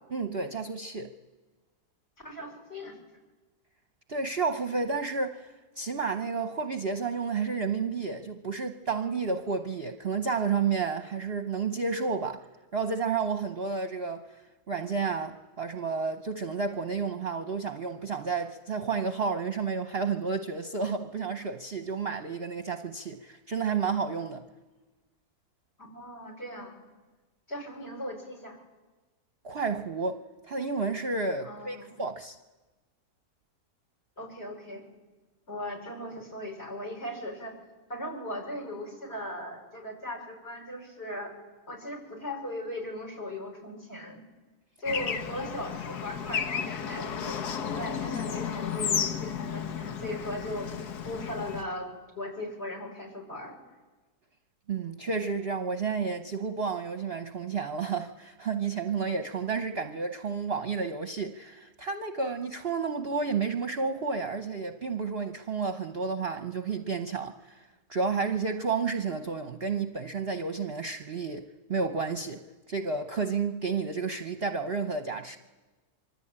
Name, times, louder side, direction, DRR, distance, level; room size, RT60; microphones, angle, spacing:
voice 1, 0.1-1.1 4.1-12.5 12.7-14.4 14.7-24.4 29.4-32.4 54.7-75.4, right 5 dB, 45° right, 1.1 m, -31 dB
voice 2, 2.2-3.0 25.8-26.8 27.5-28.6 31.4-32.0 34.2-34.8 35.5-37.5 37.9-41.3 41.7-44.2 44.8-51.9 52.2-53.6, left 1 dB, 40° left, 6.4 m, -38 dB
Bird / Traffic noise roadway noise, 44.9-51.6, left 7 dB, 85° left, 1.7 m, -33 dB
25.0 x 24.5 x 8.8 m
omnidirectional pair, 1.7 m